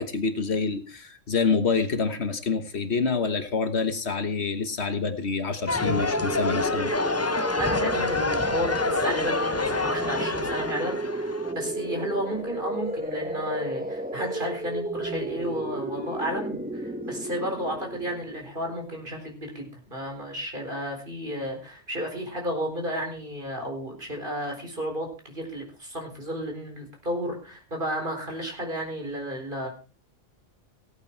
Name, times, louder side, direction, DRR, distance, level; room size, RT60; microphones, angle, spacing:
voice 1, 0.0-6.9, left 4 dB, 60° left, 9 dB, 1.5 m, -27 dB
sound 1, 5.7-11.5, left 3 dB, 20° left, 0.4 m, -27 dB
sound 2, 5.8-18.6, right 1 dB, 10° right, 0.9 m, -33 dB
voice 2, 7.6-29.7, equal, 45° right, 2 dB, 4.4 m, -33 dB
17.0 x 9.0 x 4.5 m, 0.36 s
omnidirectional pair, 1.2 m